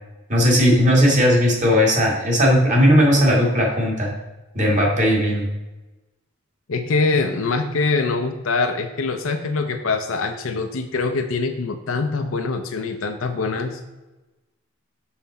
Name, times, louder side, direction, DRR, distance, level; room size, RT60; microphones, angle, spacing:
voice 1, 0.3-4.1 4.5-5.5, equal, 35° right, -2 dB, 1.8 m, -17 dB
voice 2, 6.7-13.8, left 3 dB, 70° left, 5 dB, 0.6 m, -24 dB
5.7 x 5.5 x 4.1 m, 1.1 s
head